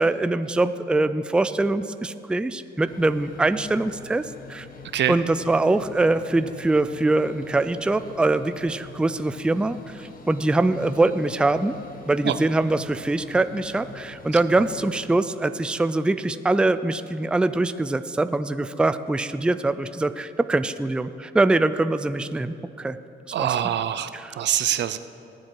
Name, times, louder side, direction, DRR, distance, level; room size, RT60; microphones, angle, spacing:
voice 1, 0.0-4.2 4.5-4.7 5.1-11.7 12.1-23.0 23.4-23.5, right 2 dB, 5° right, 12 dB, 0.4 m, -23 dB
sound 1, 2.9-15.0, left 5 dB, 45° left, 1.3 m, -45 dB
voice 2, 23.3-25.0, right 11 dB, 60° right, 13 dB, 0.6 m, -24 dB
19.5 x 7.6 x 4.6 m, 2.7 s
cardioid pair, 90°, 20 cm